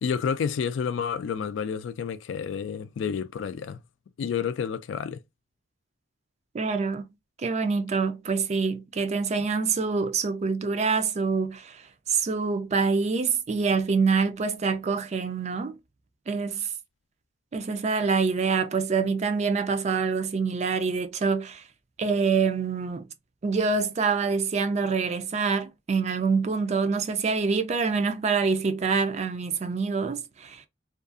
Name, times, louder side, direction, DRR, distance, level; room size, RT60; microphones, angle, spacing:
voice 1, 0.0-3.8 4.2-5.2, left 7 dB, 75° left, 0.3 m, -30 dB
voice 2, 6.5-7.0 7.4-11.8 12.1-15.8 16.3-16.7 17.5-21.6 22.0-23.1 23.4-30.6, right 5 dB, 35° right, 0.4 m, -26 dB
2.5 x 2.3 x 2.4 m
head